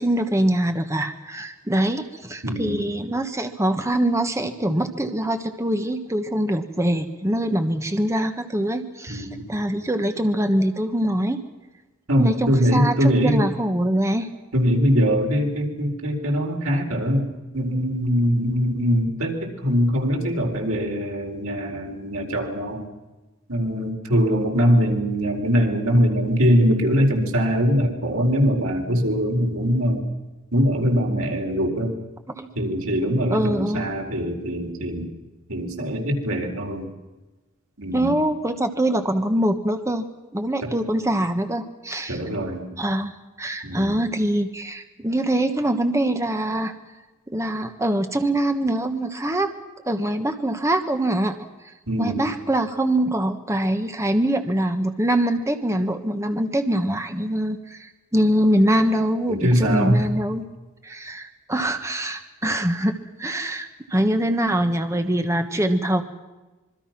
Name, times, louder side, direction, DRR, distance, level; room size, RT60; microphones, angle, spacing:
voice 1, 0.0-11.4 12.2-14.3 32.4-32.5 33.3-33.8 37.9-40.0 40.3-42.2 42.8-46.7 47.3-49.5 49.8-51.4 52.0-60.4 60.8-66.0, right 1 dB, 15° right, 7 dB, 1.3 m, -23 dB
voice 2, 2.4-2.8 9.1-9.4 12.1-13.5 14.5-17.3 17.5-22.8 23.5-30.0 30.5-31.9 32.6-35.1 35.5-36.9 37.8-38.2 40.6-40.7 42.1-42.6 43.6-44.0 51.9-52.2 59.3-60.1, equal, 90° right, 2 dB, 4.4 m, -22 dB
26.5 x 23.0 x 6.0 m, 1.1 s
head